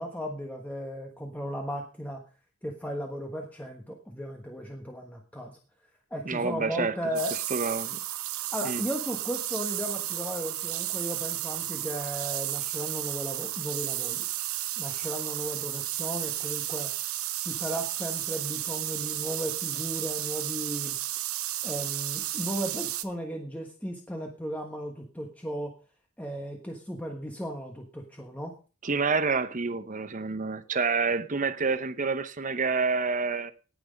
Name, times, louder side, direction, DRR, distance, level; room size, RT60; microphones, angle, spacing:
voice 1, 0.0-2.2 2.6-5.6 6.1-7.4 8.5-14.3 14.8-16.9 17.4-21.0 21.6-25.7 26.2-28.5, equal, 5° left, 1.3 m, -35 dB
voice 2, 6.3-7.0 7.5-8.0 8.6-8.8 28.8-33.5, right 4 dB, 35° right, 0.8 m, -28 dB
sound 1, 7.2-23.0, right 14 dB, 75° right, 0.9 m, -33 dB
18.5 x 6.1 x 5.2 m
head